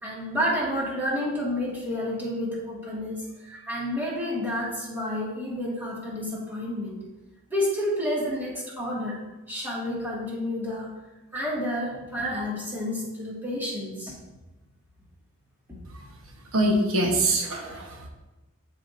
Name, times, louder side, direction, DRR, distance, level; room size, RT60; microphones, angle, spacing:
voice 1, 0.0-7.0 7.5-9.2 9.5-10.9 11.3-14.2, left 1 dB, 10° right, -6 dB, 1.9 m, -30 dB
voice 2, 16.5-18.1, right 1 dB, 70° right, 1 dB, 1.0 m, -24 dB
12.5 x 4.9 x 2.6 m, 1.1 s
head